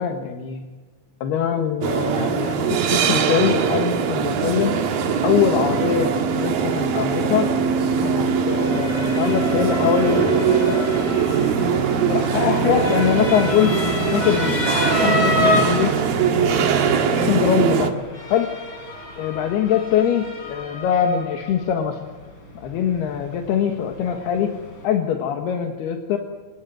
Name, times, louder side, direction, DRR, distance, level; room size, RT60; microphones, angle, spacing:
voice 1, 0.0-0.6 1.2-4.8 5.2-7.5 8.0-11.0 12.0-13.8 14.1-16.0 16.4-17.9 18.3-18.5 19.2-22.1 22.6-24.6 24.8-26.2, left 8 dB, 65° left, 4 dB, 3.2 m, -23 dB
sound 1, 1.8-17.9, right 6 dB, 55° right, 3.1 m, -21 dB
Motor vehicle (road) / Siren, 7.5-24.8, left 2 dB, 25° left, 3.9 m, -30 dB
27.0 x 20.0 x 9.4 m, 1.4 s
omnidirectional pair, 5.6 m